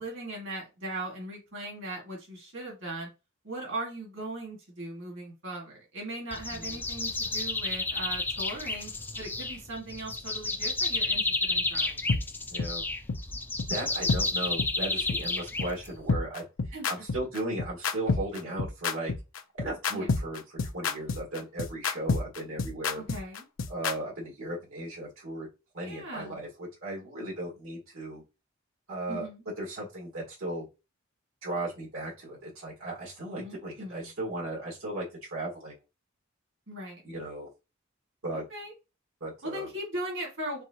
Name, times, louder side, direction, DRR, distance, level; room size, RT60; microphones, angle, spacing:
voice 1, 0.0-3.1 3.4-8.9 9.2-12.1 16.7-16.9 19.9-20.1 22.9-23.4 25.8-26.4 29.1-29.4 33.4-34.1 36.7-37.0 38.3-38.7 39.4-40.6, right 1 dB, 65° right, -1 dB, 2.0 m, -39 dB
sound 1, 6.3-16.1, left 3 dB, 10° left, 0.4 m, -31 dB
sound 2, 12.1-12.2 12.6-12.7 13.1-13.2 13.6-13.7 14.1-14.2 14.6-14.7 15.1-15.2 15.6-15.7 16.1-23.9, left 4 dB, 80° left, 0.6 m, -28 dB
voice 2, 12.5-12.8 13.7-19.1 19.5-23.0 23.7-25.5 25.7-28.2 28.9-29.3 29.6-30.6 31.4-35.8 37.0-37.5 38.2-38.4 39.2-39.7, right 1 dB, 80° right, -3 dB, 1.9 m, -36 dB
4.6 x 3.6 x 2.9 m, 0.27 s
head